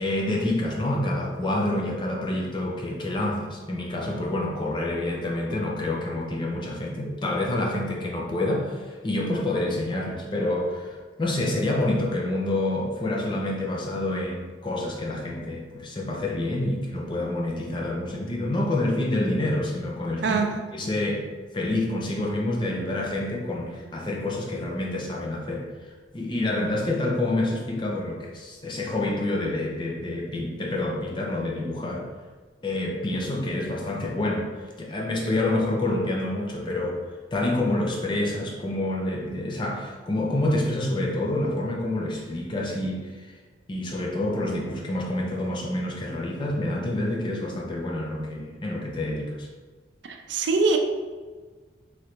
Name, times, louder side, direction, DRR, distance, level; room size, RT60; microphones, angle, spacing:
voice 1, 0.0-20.4 20.7-21.3 21.5-25.7 26.1-32.1 32.6-37.0 37.3-43.4 43.7-49.5, left 1 dB, 25° left, -2 dB, 0.4 m, -27 dB
voice 2, 50.1-50.8, right 3 dB, 75° right, 4 dB, 0.4 m, -23 dB
3.1 x 2.5 x 3.0 m, 1.4 s
head